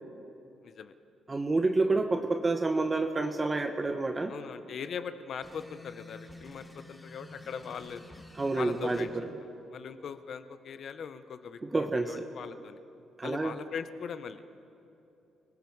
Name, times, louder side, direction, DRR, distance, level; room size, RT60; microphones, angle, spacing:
voice 1, 0.6-0.9 4.3-8.0 8.5-9.1 9.4-12.8 13.2-14.7, left 6 dB, 60° left, 11 dB, 1.0 m, -40 dB
voice 2, 1.3-4.3 8.4-9.3 11.6-12.3 13.2-13.6, right 3 dB, 25° right, 5 dB, 1.1 m, -29 dB
sound 1, 5.4-9.1, left 1 dB, 10° left, 6.7 m, -50 dB
28.5 x 19.5 x 4.7 m, 2.8 s
cardioid pair, 90°, 0 cm